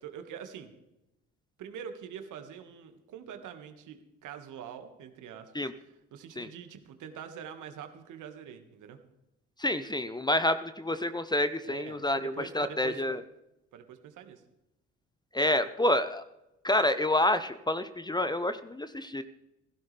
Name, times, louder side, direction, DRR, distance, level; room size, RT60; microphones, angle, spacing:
voice 1, 0.0-0.7 1.6-9.0 11.6-13.0 13.7-14.4, right 8 dB, 60° right, 7 dB, 1.8 m, -45 dB
voice 2, 9.6-13.2 15.3-16.2 16.6-19.2, left 1 dB, 10° left, 12 dB, 0.9 m, -28 dB
16.0 x 16.0 x 3.4 m, 0.91 s
hypercardioid pair, 55°, 34 cm